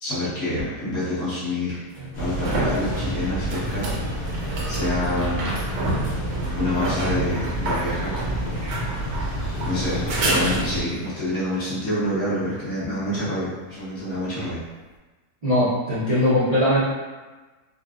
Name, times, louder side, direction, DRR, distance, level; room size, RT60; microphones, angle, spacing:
voice 1, 0.0-1.8 2.2-3.9 4.7-5.5 6.5-8.2 8.7-9.0 9.6-14.6, left 1 dB, 50° left, -11 dB, 1.6 m, -27 dB
sound 1, 0.6-0.7 1.9-11.1 14.5-14.6, right 1 dB, 75° right, 1.3 m, -30 dB
sound 2, 2.1-10.8, right 1 dB, 65° left, 1.6 m, -29 dB
voice 2, 15.4-16.8, left 1 dB, 60° right, -11 dB, 0.4 m, -20 dB
4.0 x 2.3 x 2.4 m, 1.3 s
omnidirectional pair, 1.8 m